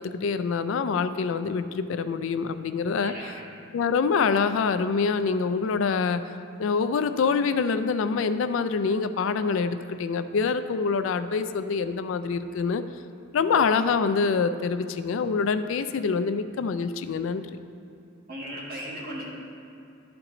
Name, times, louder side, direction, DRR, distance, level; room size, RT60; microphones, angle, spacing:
voice 1, 0.0-3.1 3.7-6.2 6.6-12.8 13.3-17.5, left 5 dB, 70° left, 11 dB, 0.3 m, -25 dB
voice 2, 3.0-3.4 18.3-19.2, equal, 45° right, -5 dB, 1.7 m, -37 dB
11.5 x 4.6 x 3.8 m, 2.7 s
head